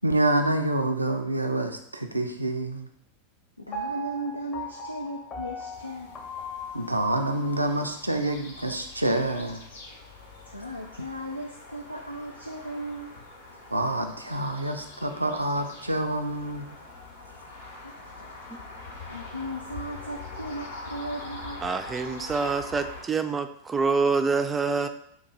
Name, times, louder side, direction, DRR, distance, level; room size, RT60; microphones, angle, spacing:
voice 1, 0.0-2.9 6.7-9.6 13.7-16.7, right 1 dB, 85° right, 5 dB, 0.4 m, -27 dB
voice 2, 3.6-6.2 10.5-13.2 17.8-18.1 18.8-21.7, right 1 dB, 90° left, 1 dB, 0.3 m, -37 dB
Piano, 3.7-7.8 8.3-8.4, equal, 20° left, 0.7 m, -38 dB
sound 1, 5.7-23.0, left 3 dB, 65° left, 1.0 m, -44 dB
voice 3, 21.6-24.9, right 4 dB, 15° right, 8 dB, 0.3 m, -26 dB
3.9 x 2.4 x 4.6 m, 0.75 s
figure-of-eight pair, 90°, 0 cm